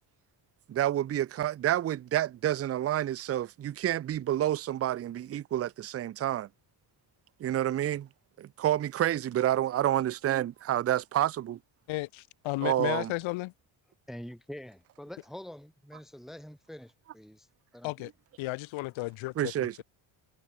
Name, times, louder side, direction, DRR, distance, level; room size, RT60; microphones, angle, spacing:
voice 1, 0.7-6.5 7.4-8.1 8.4-11.6 12.6-13.1 19.4-19.8, right 12 dB, 30° right, 0.4 m, -29 dB
voice 2, 11.9-13.5 17.8-18.1 18.4-19.8, left 21 dB, 70° left, 0.6 m, -34 dB
voice 3, 14.1-17.5 17.7-17.9, equal, ahead, 1.1 m, -45 dB
cardioid pair, 160°, 49 cm